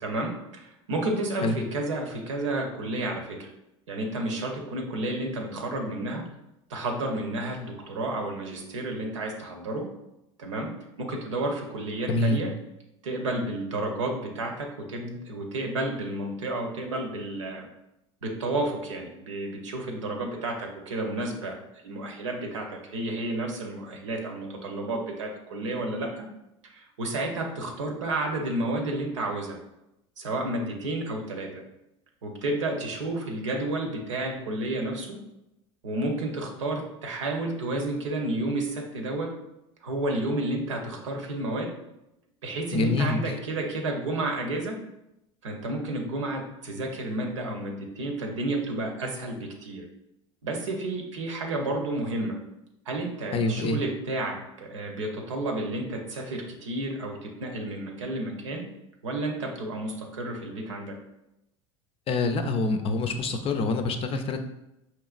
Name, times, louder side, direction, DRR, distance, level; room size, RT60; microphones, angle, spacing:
voice 1, 0.0-3.5 3.9-6.3 6.7-9.9 10.4-10.7 11.0-12.5 13.0-17.7 18.2-21.6 21.8-26.3 26.6-29.6 30.2-31.6 32.2-35.2 35.8-39.3 39.8-41.7 42.4-44.7 45.4-49.8 50.4-52.3 52.9-58.7 59.0-61.0, right 2 dB, 90° right, 2 dB, 0.8 m, -31 dB
voice 2, 12.1-12.4 42.7-43.2 53.3-53.8 62.1-64.4, left 3 dB, 40° left, 7 dB, 0.5 m, -26 dB
4.7 x 3.1 x 2.4 m, 0.88 s
hypercardioid pair, 90°, 15 cm